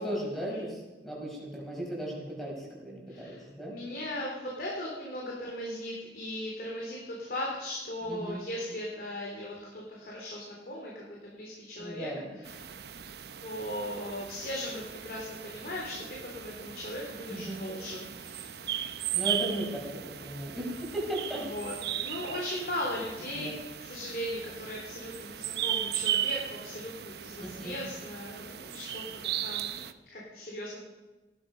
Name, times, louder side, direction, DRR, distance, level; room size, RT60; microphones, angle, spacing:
voice 1, 0.0-3.7 8.0-8.4 11.8-12.3 17.3-17.6 19.1-21.5 22.0-22.1 23.3-23.5 27.4-27.8, right 1 dB, ahead, -3 dB, 5.0 m, -36 dB
voice 2, 3.1-12.7 13.4-18.6 21.5-23.5 23.8-29.8 30.1-30.8, left 1 dB, 55° left, -3 dB, 3.5 m, -38 dB
sound 1, 12.4-29.9, right 10 dB, 65° right, 0.8 m, -37 dB
17.5 x 13.0 x 5.3 m, 1.1 s
head